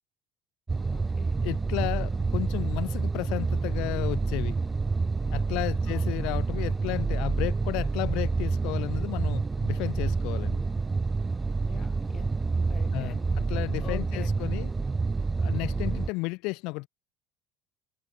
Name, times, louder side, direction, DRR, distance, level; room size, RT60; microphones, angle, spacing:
sound 1, 0.7-16.1, right 4 dB, 20° right, 0.4 m, -28 dB
voice 1, 0.9-1.5 5.8-6.4 11.6-13.4 13.8-14.6 15.7-16.1, left 8 dB, 40° left, 1.3 m, -46 dB
voice 2, 1.4-4.6 5.3-10.6 12.9-14.7 15.4-16.9, left 26 dB, 70° left, 0.3 m, -33 dB
supercardioid pair, 85°, 0 cm